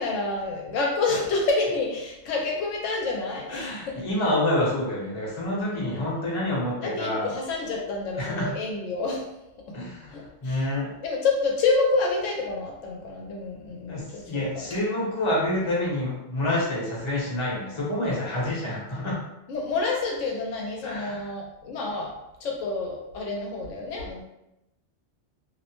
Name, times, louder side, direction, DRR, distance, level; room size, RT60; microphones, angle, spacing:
voice 1, 0.0-4.0 5.8-6.3 6.8-9.3 9.7-9.8 10.1-10.6 11.0-14.7 18.3-18.5 19.5-22.1 22.4-24.2, left 3 dB, 80° left, -1 dB, 0.9 m, -28 dB
voice 2, 3.5-7.3 8.2-8.5 9.7-10.9 13.9-19.2 20.8-21.3, left 1 dB, 30° left, -6 dB, 0.8 m, -28 dB
2.5 x 2.1 x 2.9 m, 0.88 s
omnidirectional pair, 1.3 m